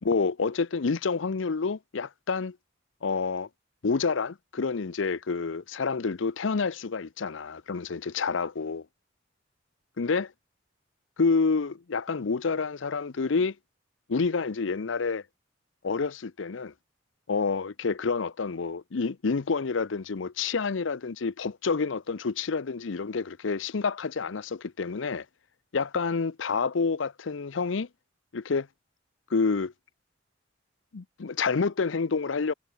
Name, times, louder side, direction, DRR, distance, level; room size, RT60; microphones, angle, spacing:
voice 1, 0.0-2.6 3.0-3.5 3.8-8.9 10.0-10.3 11.2-13.5 14.1-15.2 15.8-16.7 17.3-25.3 25.7-27.9 28.3-28.7 29.3-29.7 30.9-32.5, left 4 dB, 80° left, 0.6 m, -28 dB
head